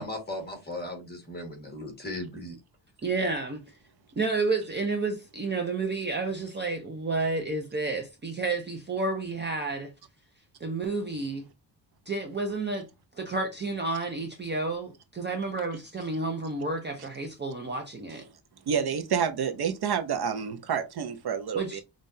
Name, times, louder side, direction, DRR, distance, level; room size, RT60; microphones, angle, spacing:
voice 1, 0.0-2.6, left 1 dB, 20° left, 1.6 m, -37 dB
voice 2, 3.0-3.6 4.1-9.9 10.6-11.4 12.1-12.9 13.2-18.2 21.5-21.8, right 3 dB, 25° right, 0.7 m, -30 dB
voice 3, 18.7-21.8, right 7 dB, 60° right, 0.7 m, -28 dB
5.6 x 2.5 x 2.6 m
wide cardioid pair, 145°, 44 cm